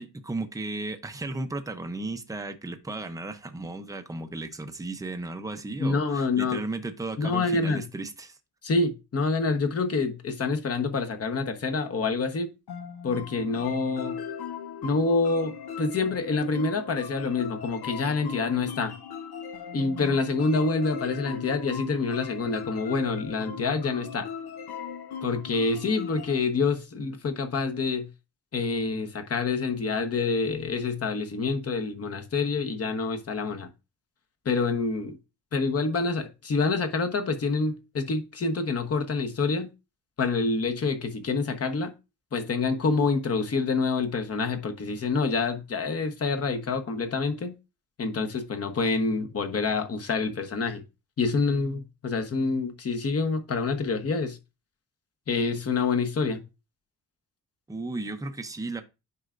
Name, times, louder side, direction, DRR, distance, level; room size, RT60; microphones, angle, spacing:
voice 1, 0.0-8.4 57.7-58.8, right 2 dB, 10° right, 0.6 m, -35 dB
voice 2, 5.8-6.6 7.2-7.8 8.6-12.5 13.0-14.2 14.8-18.9 19.7-24.3 25.2-28.1 28.5-33.7 34.4-35.2 35.5-39.7 40.2-41.9 42.3-47.5 48.0-50.8 51.2-54.4 55.3-56.4, left 4 dB, 40° left, 1.1 m, -27 dB
sound 1, 12.7-26.4, left 7 dB, 85° left, 1.0 m, -38 dB
9.5 x 5.6 x 2.5 m
wide cardioid pair, 160°, 37 cm